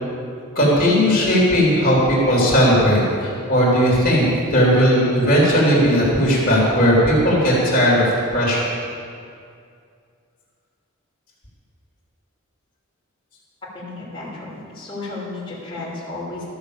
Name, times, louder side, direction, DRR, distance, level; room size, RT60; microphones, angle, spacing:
voice 1, 0.5-8.0 8.3-8.6, equal, 40° left, -6 dB, 3.3 m, -17 dB
voice 2, 13.7-16.4, left 2 dB, 25° left, -8 dB, 3.1 m, -33 dB
14.0 x 6.9 x 7.2 m, 2.3 s
head